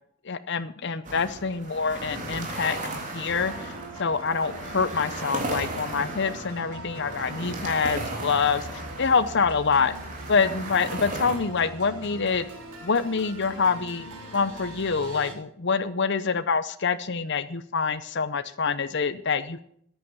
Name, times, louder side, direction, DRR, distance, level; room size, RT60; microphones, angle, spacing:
voice 1, 0.2-2.8 3.1-3.7 4.0-10.0 10.3-12.5 12.8-19.6, left 5 dB, 50° left, 12 dB, 0.7 m, -26 dB
sound 1, 1.0-11.4, right 2 dB, 35° right, 3.3 m, -36 dB
sound 2, 3.3-15.3, right 1 dB, 90° right, 3.8 m, -41 dB
14.5 x 9.6 x 7.3 m, 0.65 s
head